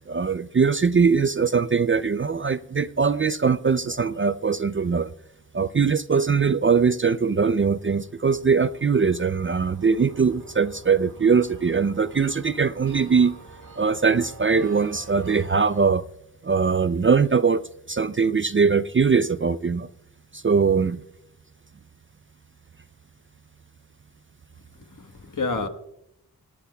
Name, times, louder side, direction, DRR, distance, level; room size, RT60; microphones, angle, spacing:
voice 1, 0.1-5.1 5.5-13.4 13.8-16.0 16.4-17.6 17.9-19.9 20.3-21.0, right 5 dB, 35° right, 0.4 m, -21 dB
sound 1, 7.8-15.9, right 2 dB, 60° right, 2.8 m, -47 dB
voice 2, 24.7-25.7, left 3 dB, 55° left, 1.3 m, -29 dB
26.5 x 9.9 x 2.2 m
wide cardioid pair, 60°, 37 cm